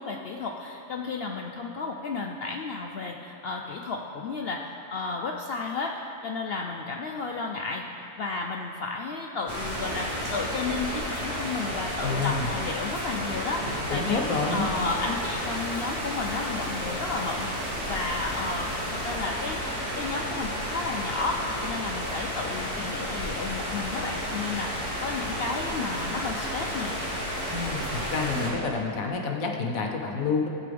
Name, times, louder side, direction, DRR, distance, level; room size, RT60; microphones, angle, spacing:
voice 1, 0.0-14.2 14.5-19.6 19.9-27.0, left 4 dB, 85° left, 1 dB, 0.5 m, -33 dB
sound 1, 9.5-28.5, equal, 20° right, 2.8 m, -32 dB
voice 2, 12.0-12.5 13.9-14.7 27.5-30.5, left 4 dB, 65° left, 2 dB, 1.2 m, -28 dB
sound 2, 14.0-19.2, right 1 dB, 90° right, 2.1 m, -44 dB
15.0 x 8.4 x 3.4 m, 2.9 s
omnidirectional pair, 1.7 m